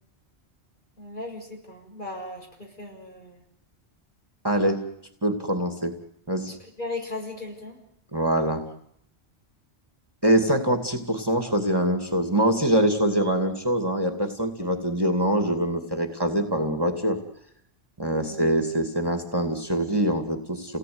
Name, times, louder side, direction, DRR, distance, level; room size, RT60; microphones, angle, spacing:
voice 1, 1.0-3.4 6.5-7.8 18.1-18.4, left 2 dB, 50° left, 1 dB, 6.8 m, -37 dB
voice 2, 4.4-4.8 5.2-5.9 6.3-6.5 8.1-8.6 10.2-17.2 18.0-20.8, right 1 dB, 20° right, 5 dB, 2.4 m, -24 dB
29.5 x 18.5 x 9.6 m, 0.75 s
omnidirectional pair, 1.1 m